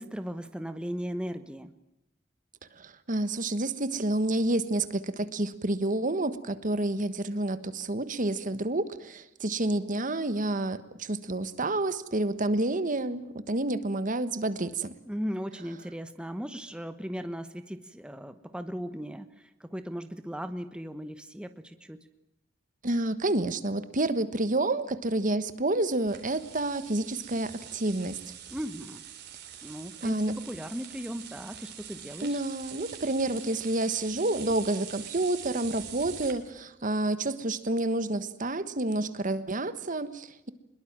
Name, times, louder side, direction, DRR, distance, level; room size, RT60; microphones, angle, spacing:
voice 1, 0.0-1.7 15.0-22.0 28.5-29.0 29.6-32.4, equal, 5° right, 9 dB, 1.2 m, -37 dB
voice 2, 2.8-14.9 22.8-28.2 30.0-30.4 32.2-40.5, right 2 dB, 45° right, 13 dB, 1.4 m, -29 dB
sound 1, 26.1-36.3, right 10 dB, 60° right, 3.8 m, -44 dB
24.0 x 22.0 x 7.4 m, 0.86 s
head